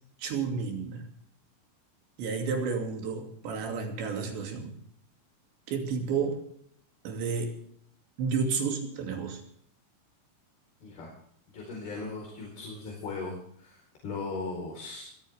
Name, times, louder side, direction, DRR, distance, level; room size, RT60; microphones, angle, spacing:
voice 1, 0.2-1.1 2.2-4.7 5.7-6.4 7.0-7.6 8.2-9.4, right 5 dB, 90° right, 3 dB, 5.0 m, -31 dB
voice 2, 10.8-11.1 11.5-15.0, left 3 dB, 60° left, -2 dB, 6.2 m, -38 dB
23.5 x 14.5 x 3.6 m, 0.66 s
omnidirectional pair, 4.9 m